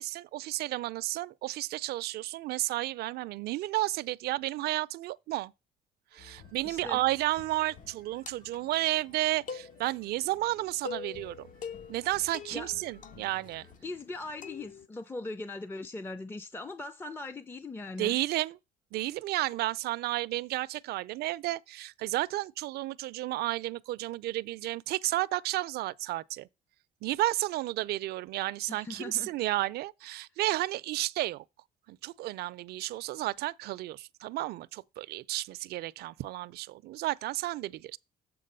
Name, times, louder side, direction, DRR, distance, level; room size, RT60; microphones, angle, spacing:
voice 1, 0.0-5.5 6.1-11.5 11.9-13.7 18.0-18.6 18.9-26.5 27.0-31.4 31.9-38.0, right 17 dB, 70° right, 0.4 m, -32 dB
sound 1, 6.1-13.8, left 5 dB, 70° left, 4.8 m, -56 dB
voice 2, 6.6-7.0 12.5-12.7 13.8-18.2 28.7-29.3, left 2 dB, 10° left, 0.4 m, -40 dB
sound 2, 7.7-14.9, left 5 dB, 50° left, 0.7 m, -46 dB
7.6 x 3.7 x 6.6 m
cardioid pair, 110°, 17 cm